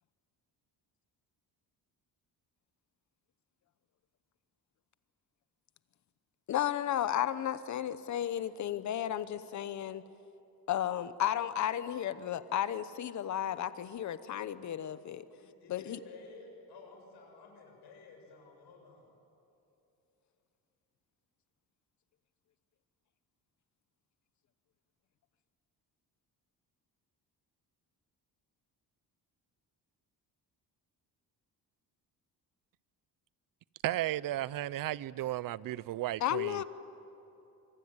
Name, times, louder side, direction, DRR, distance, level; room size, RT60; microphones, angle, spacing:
voice 1, 6.5-10.0 10.7-15.2 15.7-16.0 36.2-36.6, left 11 dB, 50° left, 1.0 m, -33 dB
voice 2, 15.3-19.1, left 3 dB, 90° left, 7.3 m, -53 dB
voice 3, 33.8-36.6, right 14 dB, 60° right, 0.6 m, -34 dB
25.5 x 23.5 x 9.7 m
cardioid pair, 175°, 38 cm